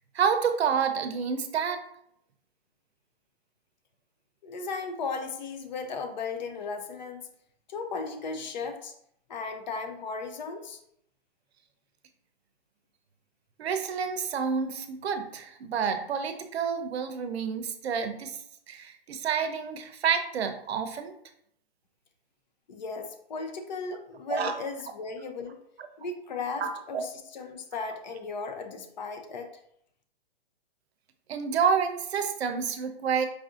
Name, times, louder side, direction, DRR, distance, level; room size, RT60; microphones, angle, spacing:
voice 1, 0.1-1.8 13.6-18.3 18.7-21.1 24.3-24.5 26.6-27.1 31.3-33.2, right 6 dB, 85° right, 7 dB, 0.7 m, -29 dB
voice 2, 4.4-7.3 7.7-8.9 9.3-10.8 22.7-25.6 26.0-29.5, left 4 dB, 45° left, 6 dB, 0.6 m, -36 dB
4.8 x 2.5 x 2.4 m, 0.71 s
hypercardioid pair, 170°, 31 cm